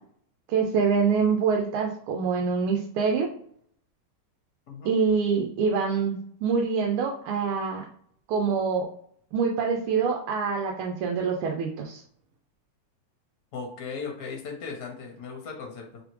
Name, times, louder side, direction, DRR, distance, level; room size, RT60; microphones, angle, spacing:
voice 1, 0.5-3.3 4.8-7.8 8.3-8.9 9.3-12.0, right 5 dB, 85° right, 1 dB, 1.5 m, -25 dB
voice 2, 4.7-5.0 13.5-16.0, left 5 dB, 60° left, 1 dB, 1.2 m, -37 dB
4.0 x 3.3 x 3.0 m, 0.63 s
omnidirectional pair, 2.4 m